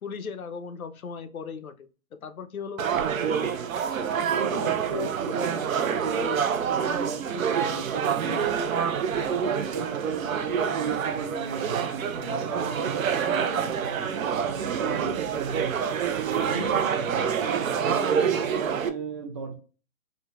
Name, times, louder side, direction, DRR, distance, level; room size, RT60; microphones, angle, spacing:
voice 1, 0.0-3.1, left 6 dB, 90° left, 9 dB, 0.6 m, -38 dB
sound 1, 2.8-18.9, right 7 dB, 70° right, 0.6 m, -27 dB
voice 2, 4.0-19.5, right 3 dB, 25° right, 5 dB, 0.4 m, -36 dB
3.7 x 2.1 x 2.3 m, 0.35 s
hypercardioid pair, 130°, 42 cm